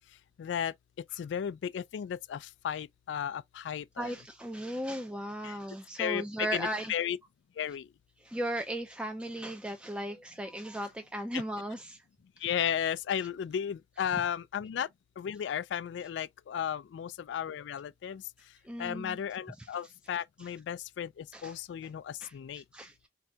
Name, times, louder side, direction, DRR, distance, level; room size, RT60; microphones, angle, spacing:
voice 1, 0.4-0.7 1.2-4.1 5.4-5.6 6.0-7.2 7.6-7.9 11.3-11.4 12.4-14.9 15.2-18.2 18.8-22.6, left 9 dB, 80° left, 0.3 m, -34 dB
voice 2, 4.0-6.9 8.2-12.0 18.6-19.2 19.6-19.7 20.4-20.5 21.3-21.6 22.2-23.1, right 1 dB, 5° right, 0.4 m, -37 dB
4.3 x 2.7 x 2.3 m
head